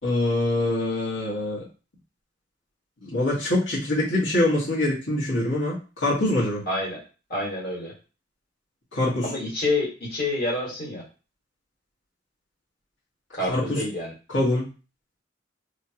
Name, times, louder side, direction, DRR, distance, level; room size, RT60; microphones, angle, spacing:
voice 1, 0.0-1.6 3.0-6.6 8.9-9.3 13.5-13.8 14.3-14.7, left 1 dB, 90° left, -8 dB, 1.7 m, -24 dB
voice 2, 6.7-7.0 7.3-7.9 9.2-11.0 13.3-14.1, left 2 dB, 50° left, -3 dB, 1.7 m, -28 dB
3.6 x 3.2 x 2.9 m, 0.34 s
head